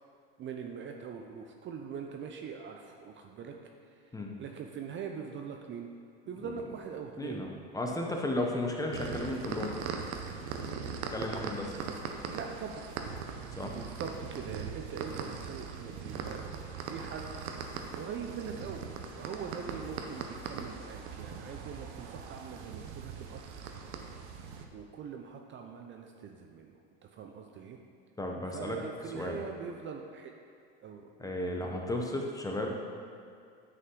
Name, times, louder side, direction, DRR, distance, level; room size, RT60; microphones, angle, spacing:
voice 1, 0.4-5.9 6.3-7.5 12.2-12.9 13.7-16.5 16.9-17.3 17.9-18.9 19.1-23.7 24.7-27.8 28.5-30.3 30.8-31.9, right 6 dB, 35° right, 3 dB, 0.6 m, -42 dB
voice 2, 7.2-9.7 11.1-11.7 13.5-13.7 28.2-28.8 29.1-29.4 31.2-32.7, left 1 dB, 10° left, 1 dB, 0.9 m, -34 dB
sound 1, 8.9-24.7, right 6 dB, 80° right, 0.9 m, -40 dB
9.6 x 5.5 x 3.8 m, 2.3 s
supercardioid pair, 110°, 34 cm